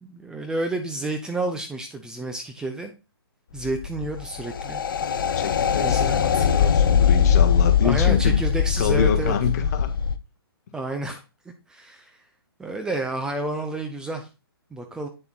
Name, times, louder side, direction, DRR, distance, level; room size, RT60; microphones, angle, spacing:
voice 1, 0.0-2.9 3.5-4.8 5.8-6.5 7.8-9.3 10.7-11.2 11.7-12.2 12.6-14.3 14.7-15.1, right 2 dB, 5° right, 5 dB, 0.6 m, -30 dB
sound 1, 3.6-10.2, left 8 dB, 60° left, 0.7 m, -21 dB
voice 2, 5.3-8.4 8.8-9.9, left 7 dB, 40° left, 7 dB, 1.4 m, -27 dB
8.8 x 6.9 x 2.4 m, 0.29 s
figure-of-eight pair, 135°, 13 cm